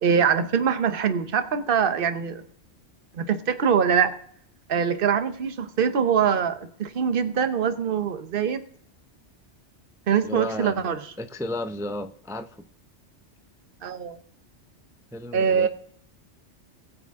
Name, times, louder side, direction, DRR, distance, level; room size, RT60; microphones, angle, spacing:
voice 1, 0.0-2.5 3.1-4.1 4.7-8.6 10.1-11.0 13.8-14.2 15.3-15.7, right 7 dB, 55° right, 11 dB, 1.0 m, -23 dB
voice 2, 10.2-10.8 11.2-12.7 15.1-15.7, left 1 dB, 5° right, 9 dB, 0.4 m, -33 dB
20.5 x 6.9 x 3.6 m, 0.65 s
omnidirectional pair, 1.2 m